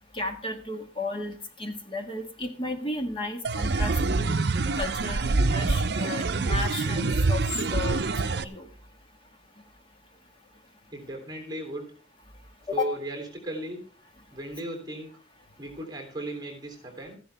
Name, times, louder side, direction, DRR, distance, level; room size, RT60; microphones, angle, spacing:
voice 1, 0.1-4.4 4.7-7.4 7.7-8.7 12.7-12.9, left 2 dB, 30° left, 5 dB, 1.6 m, -34 dB
sound 1, 3.4-8.4, right 3 dB, 60° right, 0.6 m, -25 dB
voice 2, 10.9-11.9 12.7-13.8 14.3-15.1 15.6-17.2, right 1 dB, 20° right, 2 dB, 3.1 m, -36 dB
14.0 x 11.0 x 3.4 m, 0.40 s
head